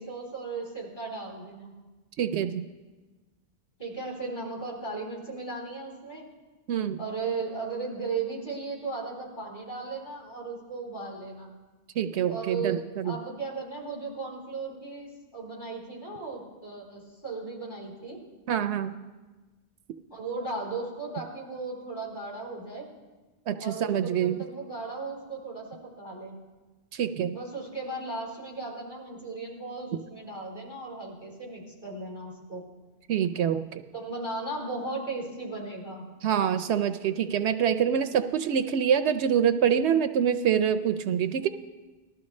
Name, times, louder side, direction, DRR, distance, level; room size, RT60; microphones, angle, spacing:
voice 1, 0.0-1.7 3.8-6.3 7.0-11.5 12.2-18.2 20.1-22.9 23.6-26.3 27.3-32.7 33.9-36.1, right 3 dB, 45° left, -4 dB, 3.8 m, -36 dB
voice 2, 2.2-2.7 6.7-7.0 12.0-13.2 18.5-18.9 23.5-24.4 26.9-27.4 33.1-33.8 36.2-41.5, right 8 dB, 75° right, 10 dB, 0.8 m, -26 dB
19.5 x 13.0 x 3.2 m, 1.2 s
omnidirectional pair, 1.2 m